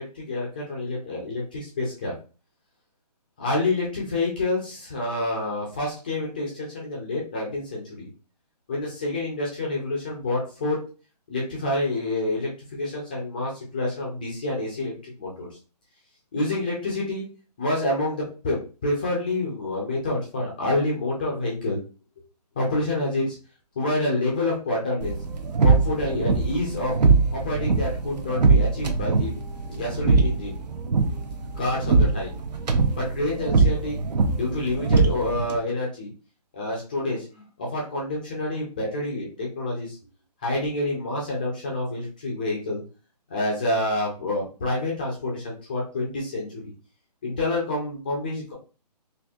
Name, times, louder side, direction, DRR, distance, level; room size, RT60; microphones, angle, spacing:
voice 1, 0.0-2.1 3.4-8.1 8.7-10.8 11.3-15.5 16.3-17.3 17.6-21.8 22.6-23.4 23.8-25.2 25.6-27.0 27.3-29.3 29.7-30.6 31.6-32.3 33.0-34.0 34.4-36.1 36.5-37.3 37.6-40.0 40.4-42.8 43.3-46.7 47.2-48.5, left 2 dB, 15° left, -3 dB, 0.4 m, -28 dB
sound 1, 25.0-35.6, right 4 dB, 75° right, 0.7 m, -22 dB
4.3 x 2.5 x 2.3 m, 0.36 s
hypercardioid pair, 165°, 21 cm